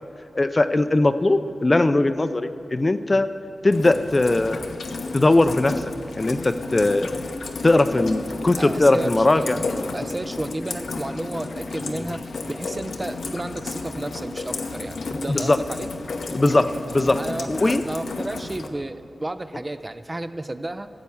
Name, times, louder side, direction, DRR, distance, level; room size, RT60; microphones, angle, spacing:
voice 1, 0.4-3.3 3.6-4.8 5.1-5.7 6.2-7.2 7.6-9.6 15.3-15.6 16.3-17.2 17.5-17.8, left 2 dB, 35° left, 10 dB, 0.5 m, -20 dB
Rain, 3.7-18.7, left 3 dB, 90° left, 0.9 m, -32 dB
voice 2, 8.6-9.6 9.9-15.9 17.1-20.9, right 1 dB, 25° right, 10 dB, 0.5 m, -32 dB
13.5 x 8.1 x 7.1 m, 2.8 s
wide cardioid pair, 70°, 0 cm